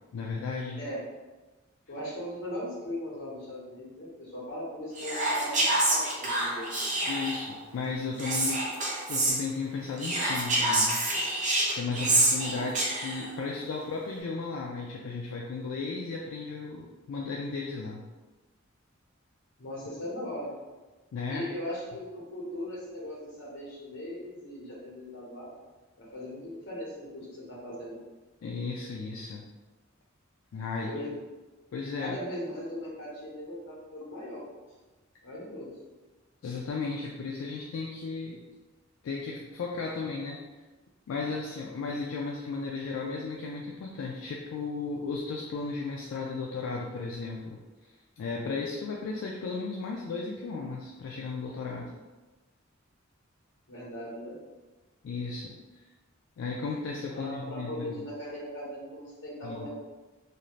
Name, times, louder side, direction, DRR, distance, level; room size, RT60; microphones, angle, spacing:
voice 1, 0.1-0.8 7.1-8.6 9.1-11.1 11.4-18.0 21.1-21.5 28.4-29.4 30.5-30.9 31.7-32.2 36.4-38.4 39.0-40.4 41.1-47.6 48.2-51.9 55.0-55.6 56.4-58.0 59.4-59.7, left 4 dB, 85° left, -2 dB, 0.3 m, -35 dB
voice 2, 1.9-6.6 19.6-20.5 21.3-25.5 26.0-28.0 30.9-31.1 32.0-34.4 35.2-35.7 53.7-54.3 57.1-59.7, left 1 dB, 65° left, -5 dB, 1.1 m, -39 dB
Whispering, 5.0-7.5 8.2-9.4 10.0-13.3, right 1 dB, 40° right, 0.6 m, -27 dB
2.5 x 2.4 x 3.0 m, 1.2 s
head